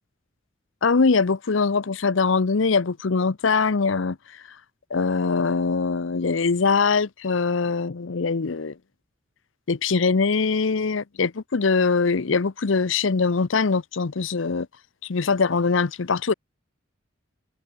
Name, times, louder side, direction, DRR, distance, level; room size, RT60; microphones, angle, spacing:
voice 1, 0.8-4.4 4.9-8.7 9.7-14.7 15.0-16.3, left 4 dB, 75° left, 0.7 m, -22 dB
head